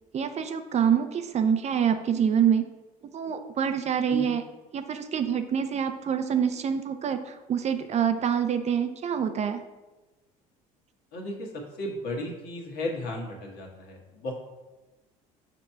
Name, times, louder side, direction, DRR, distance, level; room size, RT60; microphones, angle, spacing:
voice 1, 0.1-2.7 3.1-4.4 4.7-9.6, right 8 dB, 40° right, 8 dB, 0.5 m, -26 dB
voice 2, 11.1-11.5 11.8-14.3, left 1 dB, 65° left, 0 dB, 1.6 m, -34 dB
6.6 x 3.0 x 5.6 m, 1.1 s
supercardioid pair, 80°, 18 cm